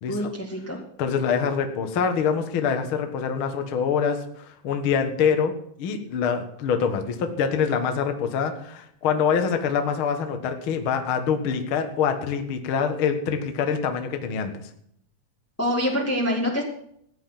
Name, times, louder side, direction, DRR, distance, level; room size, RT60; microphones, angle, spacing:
voice 1, 0.1-0.8 15.6-16.6, equal, 10° left, -1 dB, 1.0 m, -25 dB
voice 2, 1.0-5.5 5.8-14.5, left 6 dB, 50° left, 6 dB, 1.7 m, -25 dB
15.5 x 9.8 x 5.9 m, 0.71 s
omnidirectional pair, 4.1 m